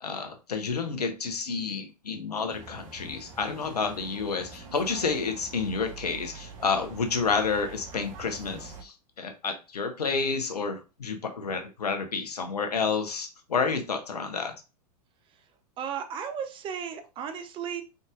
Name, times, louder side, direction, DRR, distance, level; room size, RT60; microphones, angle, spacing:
voice 1, 0.0-14.5, left 5 dB, 70° left, 7 dB, 1.0 m, -30 dB
sound 1, 2.5-8.8, right 4 dB, 55° right, 1.2 m, -45 dB
voice 2, 15.8-17.8, right 8 dB, 25° right, 8 dB, 0.6 m, -34 dB
5.2 x 4.0 x 2.4 m, 0.30 s
figure-of-eight pair, 95°, 21 cm